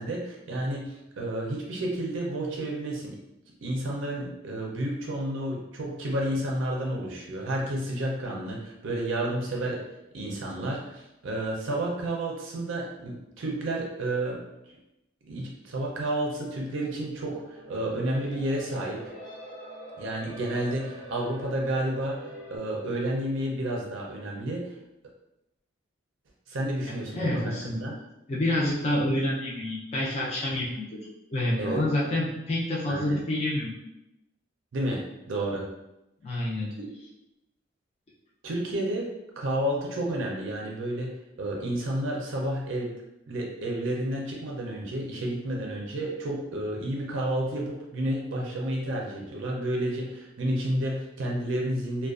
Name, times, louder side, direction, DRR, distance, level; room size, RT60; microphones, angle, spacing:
voice 1, 0.0-3.2 3.6-9.8 10.1-14.4 15.3-19.0 20.0-22.2 22.5-24.7 26.5-27.4 27.8-28.0 31.6-31.8 32.9-33.2 34.7-35.0 35.3-35.6 38.4-39.1 39.4-42.9 43.3-52.1, right 1 dB, 70° right, -2 dB, 0.5 m, -31 dB
sound 1, 17.2-22.6, right 1 dB, 85° left, 0.7 m, -44 dB
voice 2, 27.1-27.9 28.3-30.9 31.3-33.7 36.2-36.7, left 1 dB, 30° left, -5 dB, 0.4 m, -28 dB
2.4 x 2.2 x 2.3 m, 0.89 s
head